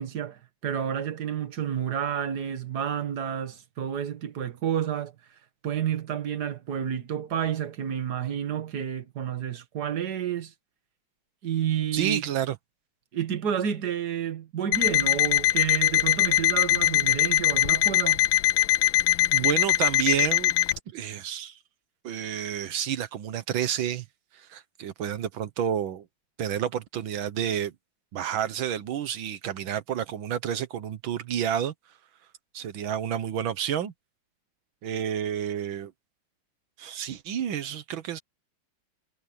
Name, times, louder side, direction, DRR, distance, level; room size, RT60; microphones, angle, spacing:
voice 1, 0.0-5.1 5.6-10.5 11.4-12.2 13.1-18.2, right 9 dB, 55° right, 2.0 m, -30 dB
voice 2, 11.9-12.6 19.3-20.5 20.9-21.6 22.0-24.1 24.3-26.0 26.4-27.7 28.1-31.7 32.5-33.9 34.8-35.9 36.8-38.2, right 9 dB, 85° right, 1.8 m, -30 dB
Alarm, 14.7-20.8, left 14 dB, 85° left, 1.3 m, -22 dB
omnidirectional pair, 2.1 m